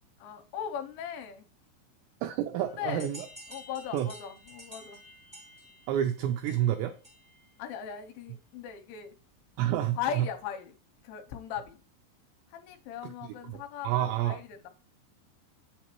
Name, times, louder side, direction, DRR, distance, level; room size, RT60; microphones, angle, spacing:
voice 1, 0.2-1.5 2.6-3.1 3.5-5.0 7.6-9.2 10.0-10.7 11.0-11.8 12.5-14.7, left 8 dB, 80° left, 3.1 m, -38 dB
voice 2, 2.2-3.3 3.9-4.1 5.9-6.9 9.6-10.3 13.0-13.1 13.5-14.4, right 11 dB, 85° right, 2.5 m, -29 dB
sound 1, 3.0-7.5, equal, 20° right, 0.5 m, -50 dB
8.3 x 7.1 x 3.0 m
omnidirectional pair, 5.6 m